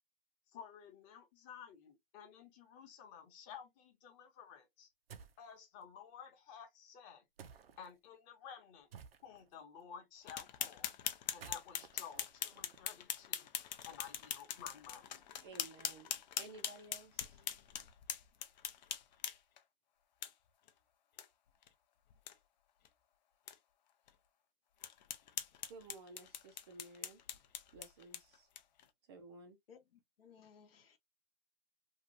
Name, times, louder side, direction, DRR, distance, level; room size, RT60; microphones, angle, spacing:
voice 1, 0.5-4.9 5.4-7.2 7.8-8.9 9.2-10.9 11.3-13.5 13.8-15.1, left 7 dB, 25° left, 0.9 m, -53 dB
sound 1, 5.1-5.5 7.4-7.9 8.9-9.5 11.2-13.2, right 7 dB, 75° right, 0.6 m, -55 dB
sound 2, 10.3-19.6 20.2-20.3 20.7-20.8 21.2-21.3 21.6-21.7 22.1-22.3 22.8-22.9 23.5-23.6 24.1-24.2 24.8-28.8, left 9 dB, 50° left, 0.5 m, -43 dB
voice 2, 15.4-16.1 16.4-17.5 25.7-27.2 27.7-28.5 29.1-29.6, right 3 dB, 25° right, 0.4 m, -54 dB
voice 3, 29.7-31.0, left 7 dB, 75° left, 0.8 m, -61 dB
2.9 x 2.4 x 2.7 m
hypercardioid pair, 135°, 30 cm